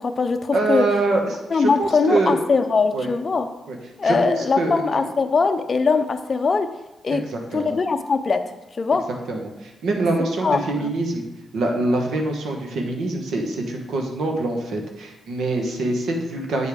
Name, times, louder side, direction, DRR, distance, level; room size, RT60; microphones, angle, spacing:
voice 1, 0.0-0.8 1.5-3.5 4.0-6.7 7.0-7.2 7.5-8.4 8.7-9.0 10.4-10.9, left 4 dB, 35° left, 7 dB, 0.5 m, -21 dB
voice 2, 0.5-2.4 2.9-3.1 3.7-3.8 4.0-4.8 7.1-7.8 9.3-11.2 11.5-16.7, right 2 dB, 80° right, 2 dB, 1.1 m, -24 dB
8.2 x 5.0 x 3.5 m, 1.0 s
cardioid pair, 125°, 0 cm